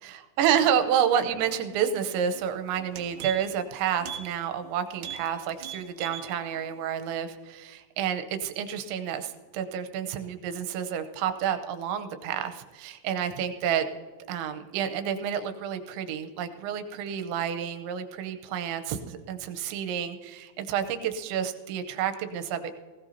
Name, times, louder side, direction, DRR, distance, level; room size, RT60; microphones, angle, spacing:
voice 1, 0.4-13.9 14.3-22.7, right 8 dB, 90° right, 9 dB, 3.1 m, -29 dB
sound 1, 2.3-2.5 2.8-3.6 4.0-4.3 4.6-4.7 5.0-5.3 5.6-6.3 6.7-6.8, right 9 dB, 70° right, 2.1 m, -38 dB
19.5 x 16.0 x 2.8 m, 1.4 s
omnidirectional pair, 5.3 m